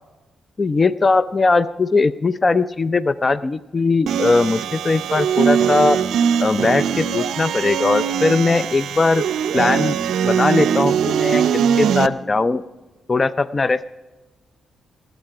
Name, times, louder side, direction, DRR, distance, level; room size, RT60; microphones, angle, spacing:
voice 1, 0.6-6.0 6.4-9.2 9.5-11.4 11.8-12.6 13.1-14.0, left 3 dB, 35° left, 16 dB, 0.4 m, -19 dB
sound 1, 4.1-12.1, right 8 dB, 75° right, 0.5 m, -21 dB
19.0 x 8.0 x 4.8 m, 1.1 s
supercardioid pair, 50°, 0 cm